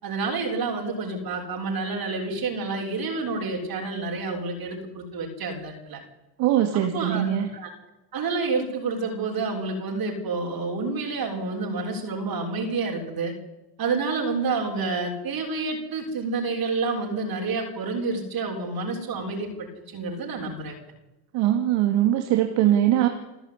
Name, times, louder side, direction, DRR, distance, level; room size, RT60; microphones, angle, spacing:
voice 1, 0.0-6.0 6.7-7.7 8.1-13.3 13.8-20.8, right 3 dB, 50° right, 0 dB, 6.8 m, -29 dB
voice 2, 6.4-7.5 21.3-23.1, right 12 dB, 75° right, 5 dB, 2.6 m, -21 dB
28.0 x 13.5 x 9.9 m, 1.0 s
supercardioid pair, 75°, 45 cm